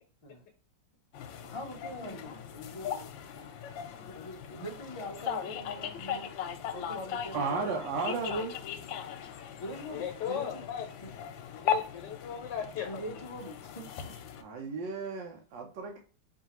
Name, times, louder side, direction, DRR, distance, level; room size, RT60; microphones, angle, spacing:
sound 1, 1.1-14.4, left 8 dB, 90° left, 1.4 m, -38 dB
voice 1, 1.4-3.5 4.0-6.3 6.7-8.0 9.6-10.6 11.0-11.1 12.8-14.2, equal, 40° left, 0.4 m, -43 dB
voice 2, 7.3-8.5 14.4-16.0, right 4 dB, 75° right, 1.4 m, -34 dB
voice 3, 9.9-10.9 11.5-13.0, left 9 dB, 70° left, 1.4 m, -37 dB
4.7 x 2.8 x 2.9 m
omnidirectional pair, 2.0 m